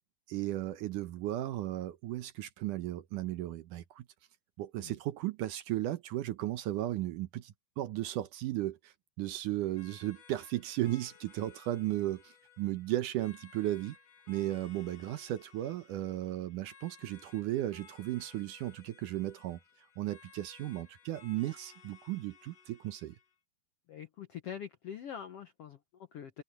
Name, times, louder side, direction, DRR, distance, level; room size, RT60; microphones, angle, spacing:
voice 1, 0.3-4.1 4.6-14.0 14.3-19.6 20.0-23.2, right 14 dB, 70° right, 2.2 m, -35 dB
sound 1, 9.8-23.3, left 6 dB, 50° left, 2.7 m, -59 dB
voice 2, 23.9-26.4, left 8 dB, 75° left, 1.4 m, -44 dB
open air
omnidirectional pair, 4.1 m